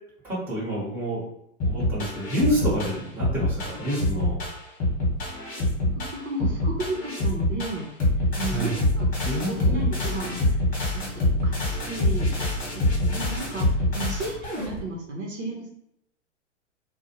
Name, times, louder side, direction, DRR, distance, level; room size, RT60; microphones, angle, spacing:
voice 1, 0.2-1.2 1.6-4.4 8.5-8.7 9.2-9.8, right 1 dB, 5° right, -8 dB, 1.1 m, -28 dB
sound 1, 1.6-14.8, left 1 dB, 20° left, 1.2 m, -25 dB
voice 2, 5.8-7.8 8.4-9.1 9.5-10.6 10.9-12.3 12.7-15.7, right 2 dB, 60° right, -1 dB, 0.8 m, -33 dB
2.5 x 2.1 x 2.9 m, 0.77 s
hypercardioid pair, 105°, 37 cm